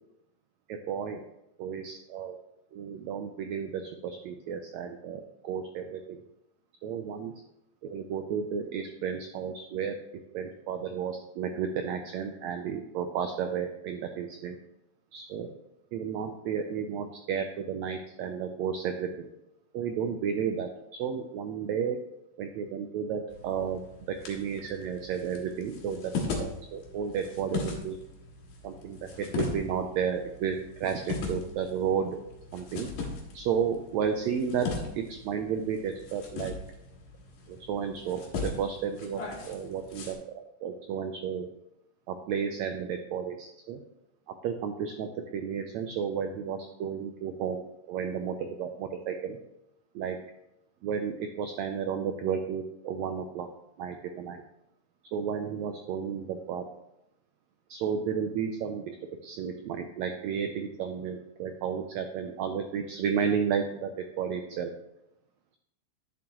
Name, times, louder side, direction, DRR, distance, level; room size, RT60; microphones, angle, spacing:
voice 1, 0.7-1.2 1.6-2.3 2.7-6.2 6.8-7.3 7.8-9.9 10.3-14.6 15.1-15.5 15.9-19.1 19.7-20.7 21.0-22.0 22.4-23.8 24.3-26.1 26.4-28.0 28.6-32.2 32.5-32.9 33.3-34.7 34.9-36.6 37.5-41.5 42.1-43.8 44.4-47.6 47.9-49.4 49.9-50.2 50.8-53.5 53.8-54.4 55.1-56.6 57.7-59.0 59.2-64.7, right 7 dB, 85° right, 6 dB, 1.5 m, -32 dB
sound 1, 23.3-40.1, left 3 dB, 70° left, 2.9 m, -39 dB
11.0 x 7.2 x 3.0 m, 0.85 s
omnidirectional pair, 3.9 m